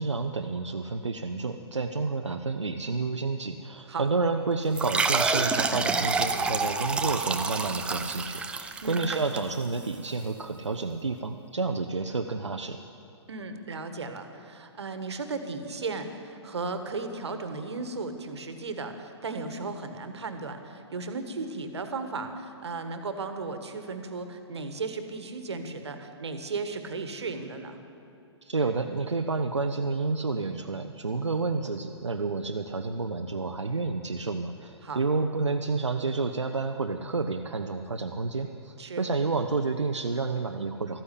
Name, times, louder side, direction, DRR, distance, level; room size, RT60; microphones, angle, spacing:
voice 1, 0.0-12.8 28.4-41.0, right 3 dB, 90° right, 4 dB, 0.7 m, -30 dB
sound 1, 4.7-9.9, right 4 dB, 5° right, 0.5 m, -28 dB
voice 2, 8.8-9.2 13.3-27.9 34.8-35.0 38.8-39.1, right 3 dB, 70° right, 8 dB, 1.5 m, -35 dB
13.5 x 9.9 x 8.3 m, 3.0 s
figure-of-eight pair, 125°, 15 cm